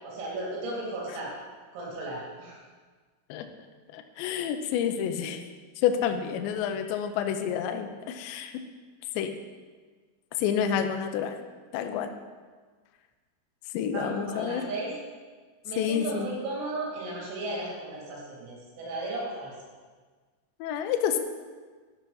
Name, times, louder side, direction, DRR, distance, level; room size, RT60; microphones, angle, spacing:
voice 1, 0.0-1.3 1.7-2.6 13.9-15.0 15.7-19.5, right 2 dB, 80° right, -4 dB, 5.3 m, -35 dB
voice 2, 3.9-5.5 5.8-8.5 9.2-9.3 10.3-11.4 11.7-12.1 13.7-14.7 15.8-16.3 20.6-21.2, left 8 dB, 90° left, 7 dB, 2.5 m, -29 dB
13.0 x 5.6 x 5.6 m, 1.5 s
omnidirectional pair, 5.9 m